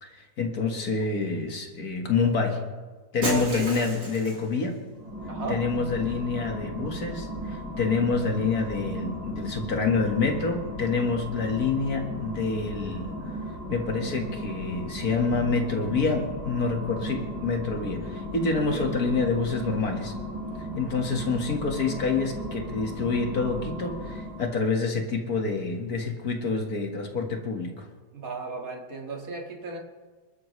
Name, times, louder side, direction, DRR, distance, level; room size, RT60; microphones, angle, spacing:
voice 1, 0.0-2.6 3.1-4.7 5.5-13.1 13.7-20.1 20.6-27.9, left 4 dB, 55° left, 3 dB, 2.2 m, -27 dB
voice 2, 3.2-3.8 5.3-5.6 18.5-18.9 28.1-29.8, right 4 dB, 50° right, 1 dB, 2.3 m, -34 dB
Shatter, 3.2-4.6, right 1 dB, 75° right, 4.2 m, -33 dB
sound 1, 4.9-24.7, right 1 dB, 5° right, 5.9 m, -36 dB
28.0 x 12.5 x 3.2 m, 1.4 s
omnidirectional pair, 1.9 m